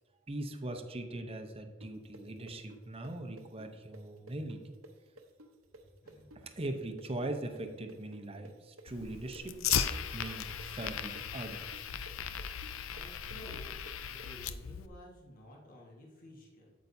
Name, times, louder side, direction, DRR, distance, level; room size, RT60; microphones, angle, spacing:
voice 1, 0.3-4.6 6.3-9.6 10.1-11.8, right 1 dB, 30° right, 5 dB, 0.7 m, -40 dB
sound 1, 1.8-9.4 9.7-14.3, right 1 dB, 90° right, 0.9 m, -54 dB
voice 2, 5.9-6.3 12.9-13.8 14.1-16.7, equal, 45° left, -2 dB, 1.6 m, -53 dB
Fire, 8.9-14.9, left 8 dB, 75° left, 0.4 m, -37 dB
8.8 x 8.3 x 2.7 m, 1.5 s
head